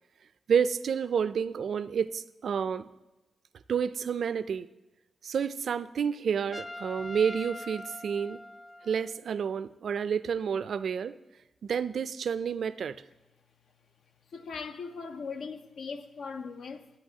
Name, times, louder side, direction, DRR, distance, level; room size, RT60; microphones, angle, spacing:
voice 1, 0.5-2.9 3.7-4.7 5.2-8.4 8.8-11.1 11.6-13.0, right 7 dB, 75° right, 0.3 m, -29 dB
Trumpet, 6.5-9.2, left 2 dB, 30° left, 0.4 m, -43 dB
voice 2, 14.3-16.9, left 5 dB, 80° left, 0.6 m, -39 dB
14.5 x 8.3 x 2.8 m
cardioid pair, 85°, 0 cm